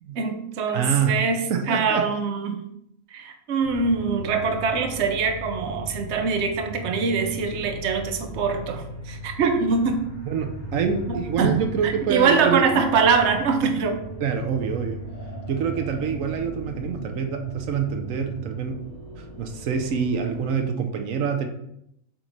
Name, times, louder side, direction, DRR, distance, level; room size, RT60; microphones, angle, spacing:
voice 1, 0.1-2.6 3.1-10.1 10.8-14.0, right 5 dB, 65° right, 5 dB, 1.0 m, -24 dB
voice 2, 0.7-1.2 1.5-2.1 8.3-8.4 10.3-12.6 14.2-15.0 15.5-18.9 19.2-21.5, right 6 dB, 85° right, 5 dB, 1.1 m, -26 dB
sound 1, 3.6-20.6, equal, 40° left, 1.2 m, -38 dB
7.7 x 3.1 x 3.9 m, 0.76 s
omnidirectional pair, 1.3 m